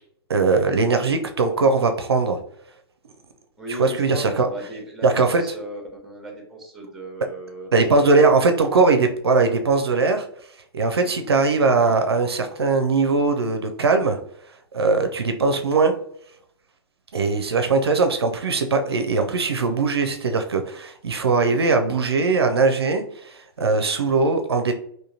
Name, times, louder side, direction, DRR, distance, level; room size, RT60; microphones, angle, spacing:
voice 1, 0.3-2.4 3.8-4.5 5.0-5.4 7.7-10.3 10.7-14.2 14.7-15.9 17.1-24.7, right 3 dB, 70° right, 6 dB, 0.4 m, -20 dB
voice 2, 3.6-8.4 11.0-11.3, right 1 dB, ahead, 0 dB, 0.9 m, -37 dB
3.6 x 2.6 x 2.7 m, 0.67 s
figure-of-eight pair, 110°, 13 cm